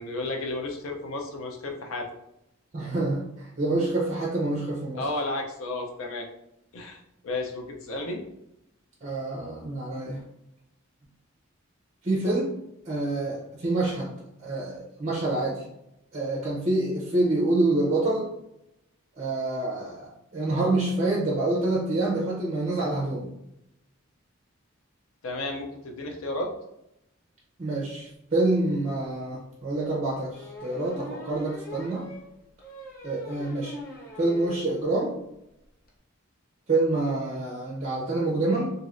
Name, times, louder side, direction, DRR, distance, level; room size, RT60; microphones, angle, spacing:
voice 1, 0.0-2.1 4.9-6.3 6.7-8.2 25.2-26.5, left 2 dB, 80° left, 2 dB, 0.6 m, -32 dB
voice 2, 2.7-5.1 9.0-10.2 12.0-12.5 12.9-14.1 14.4-15.6 16.1-18.3 19.2-23.3 27.6-32.1 33.0-33.7 34.2-35.1 36.7-38.7, right 2 dB, 35° right, -3 dB, 0.6 m, -27 dB
sound 1, 30.3-34.6 35.0-35.1 35.3-35.4 35.6-35.9, equal, 45° left, 0.7 m, -42 dB
3.1 x 2.6 x 2.5 m, 0.83 s
head